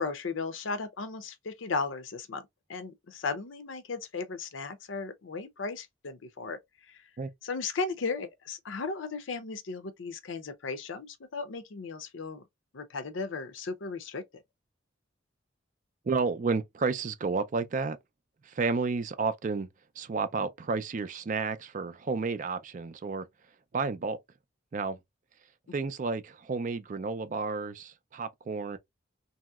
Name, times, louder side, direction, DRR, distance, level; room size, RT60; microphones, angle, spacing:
voice 1, 0.0-2.4 2.7-6.6 6.9-7.0 7.4-12.4 12.7-14.4, left 4 dB, 75° left, 0.6 m, -36 dB
voice 2, 16.0-18.0 18.4-19.7 20.0-23.3 23.7-24.2 24.7-25.0 25.7-28.8, right 4 dB, 40° right, 0.4 m, -31 dB
3.0 x 2.7 x 2.3 m
head